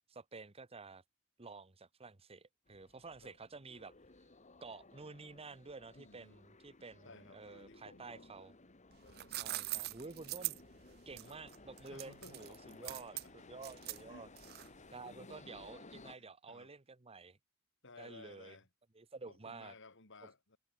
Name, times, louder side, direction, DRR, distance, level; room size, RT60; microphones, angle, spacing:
voice 1, 0.1-1.0 1.4-3.9 4.6-8.5 9.4-10.6 11.1-13.2 13.5-14.3 14.9-17.4 18.0-18.6 18.9-19.7, right 3 dB, 30° right, 1.0 m, -51 dB
sound 1, 2.7-16.2, left 2 dB, 35° left, 2.0 m, -58 dB
voice 2, 5.9-6.4 7.0-8.3 9.0-9.6 11.2-11.4 11.8-13.3 14.1-14.3 15.0-15.2 16.0-16.7 17.8-18.7 19.3-20.6, left 3 dB, 60° left, 5.2 m, -58 dB
sound 2, 8.9-14.9, right 17 dB, 50° right, 0.4 m, -43 dB
head